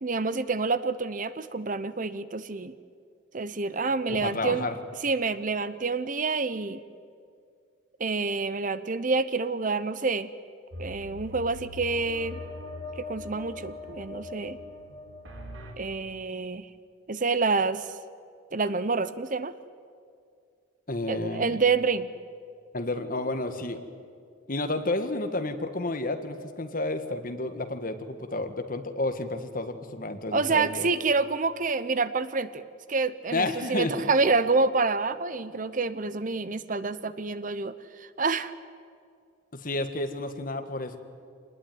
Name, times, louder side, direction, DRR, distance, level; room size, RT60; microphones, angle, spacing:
voice 1, 0.0-2.7 3.3-4.7 5.0-6.8 8.0-10.3 10.8-12.4 13.0-14.6 15.8-16.7 17.1-17.9 18.5-19.5 21.1-22.1 30.3-32.6 32.9-38.5, right 4 dB, 40° right, 14 dB, 0.8 m, -27 dB
voice 2, 4.1-4.7 20.9-21.6 22.7-23.8 24.5-30.9 33.3-33.9 39.5-41.0, left 2 dB, 45° left, 7 dB, 1.7 m, -31 dB
sound 1, 10.7-15.7, left 2 dB, 75° right, 3.2 m, -41 dB
25.5 x 20.0 x 9.5 m, 2.3 s
head